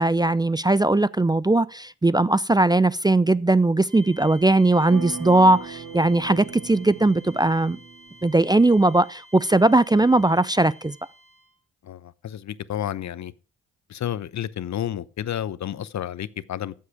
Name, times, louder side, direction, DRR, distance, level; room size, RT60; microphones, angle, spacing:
voice 1, 0.0-7.8 8.2-11.0, right 2 dB, 10° right, 0.5 m, -19 dB
sound 1, 3.9-11.6, equal, 55° right, 4.4 m, -50 dB
sound 2, 4.9-8.6, right 6 dB, 75° right, 2.0 m, -38 dB
voice 2, 11.8-13.3 13.9-16.7, left 10 dB, 55° left, 0.9 m, -31 dB
14.0 x 7.6 x 4.8 m
hypercardioid pair, 45°, 34 cm